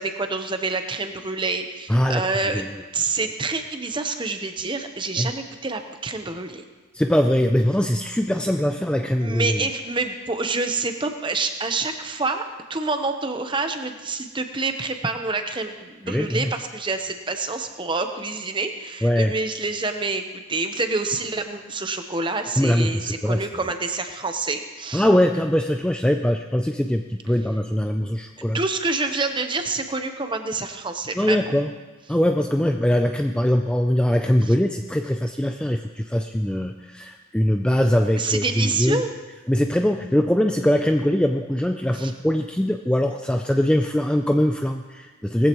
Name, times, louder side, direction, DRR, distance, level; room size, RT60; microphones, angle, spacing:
voice 1, 0.0-2.6 2.9-6.6 9.2-12.4 12.7-25.1 28.5-31.4 34.5-34.6 38.2-39.1 41.9-42.1, right 3 dB, 25° right, 6 dB, 0.9 m, -27 dB
voice 2, 1.9-2.2 2.5-2.7 5.2-5.3 6.9-9.6 16.1-16.5 19.0-19.3 22.6-23.4 24.9-28.6 31.1-31.7 32.1-39.0 39.5-45.5, equal, 5° left, 4 dB, 0.4 m, -22 dB
19.5 x 15.0 x 3.1 m, 1.3 s
head